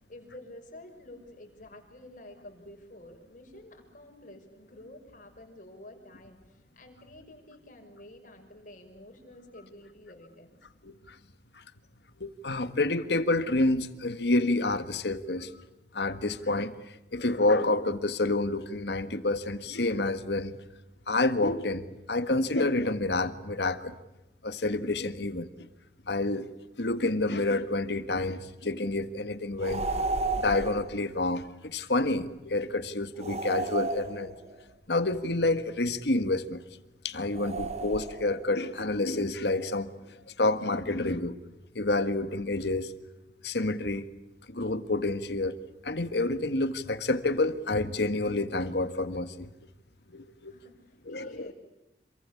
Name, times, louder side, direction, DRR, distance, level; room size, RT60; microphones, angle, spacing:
voice 1, 0.1-10.7 50.4-51.5, left 1 dB, 50° left, 5.9 m, -50 dB
voice 2, 10.8-11.1 12.2-15.5 15.9-16.8 17.1-20.5 21.1-24.0 24.4-25.5 26.1-26.5 26.8-29.8 30.3-34.3 34.9-36.6 37.0-39.9 40.4-41.4 41.7-42.9 43.4-44.1 44.5-45.6 45.8-49.5 50.1-50.5 51.1-51.5, left 2 dB, 70° left, 1.7 m, -28 dB
sound 1, 29.6-30.9 33.2-34.6 37.3-38.4, right 3 dB, 40° right, 1.5 m, -32 dB
27.0 x 23.5 x 8.6 m
head